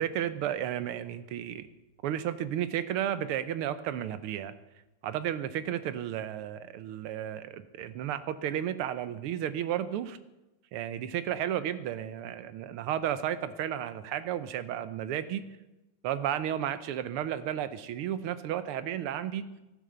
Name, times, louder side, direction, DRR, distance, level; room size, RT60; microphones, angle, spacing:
voice 1, 0.0-1.7 2.0-4.5 5.0-10.2 10.7-15.4 16.0-19.5, right 10 dB, 85° right, 13 dB, 1.7 m, -33 dB
14.0 x 9.9 x 6.8 m, 1.0 s
omnidirectional pair, 2.4 m